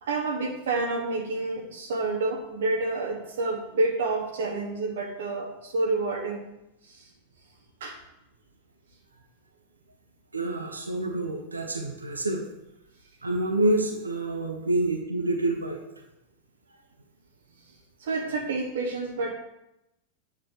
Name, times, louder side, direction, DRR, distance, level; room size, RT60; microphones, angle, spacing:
voice 1, 0.0-6.4 7.8-8.0 18.0-19.3, right 3 dB, 60° right, 0 dB, 1.2 m, -28 dB
voice 2, 10.3-12.4 13.2-15.8, right 2 dB, 80° right, 2 dB, 1.4 m, -27 dB
9.3 x 4.1 x 6.4 m, 0.90 s
figure-of-eight pair, 90°, 0 cm